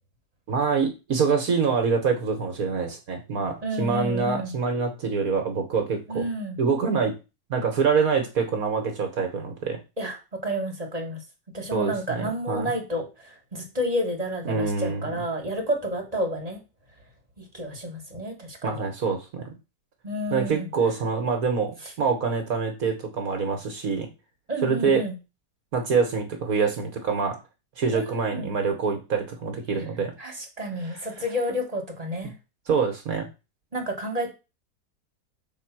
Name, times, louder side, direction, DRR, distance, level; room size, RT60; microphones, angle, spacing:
voice 1, 0.5-6.2 6.6-7.1 7.5-9.8 11.7-12.7 14.5-15.2 18.6-19.4 20.3-24.1 24.6-25.0 25.7-27.3 27.8-30.1 30.8-31.0 32.7-33.2, right 5 dB, 65° right, 4 dB, 1.5 m, -25 dB
voice 2, 3.6-4.5 6.1-6.6 10.0-10.2 10.4-11.2 11.5-16.6 17.4-18.8 20.0-20.7 24.5-25.2 27.9-28.5 30.2-32.3 33.7-34.3, equal, 25° right, 2 dB, 1.7 m, -30 dB
5.8 x 4.0 x 5.9 m, 0.28 s
omnidirectional pair, 1.7 m